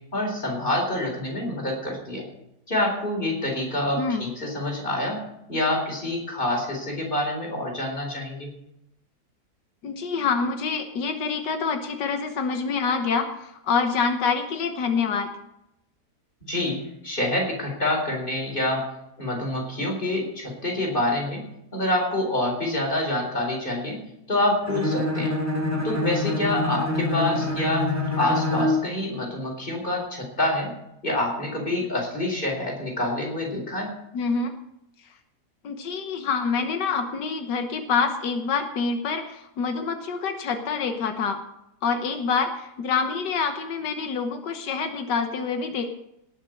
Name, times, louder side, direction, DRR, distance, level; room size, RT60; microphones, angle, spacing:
voice 1, 0.1-2.3 2.7-5.2 5.5-8.5 16.4-18.9 19.2-21.4 21.7-24.0 24.3-25.3 25.8-27.9 28.2-30.7 31.0-33.9, left 1 dB, 30° left, 0 dB, 4.4 m, -27 dB
voice 2, 4.0-4.3 9.8-15.3 34.1-34.6 35.6-41.4 41.8-45.9, left 5 dB, 90° left, 6 dB, 1.8 m, -26 dB
Bowed string instrument, 24.6-28.9, left 2 dB, 10° right, 3.4 m, -25 dB
18.5 x 7.3 x 6.4 m, 0.83 s
omnidirectional pair, 1.8 m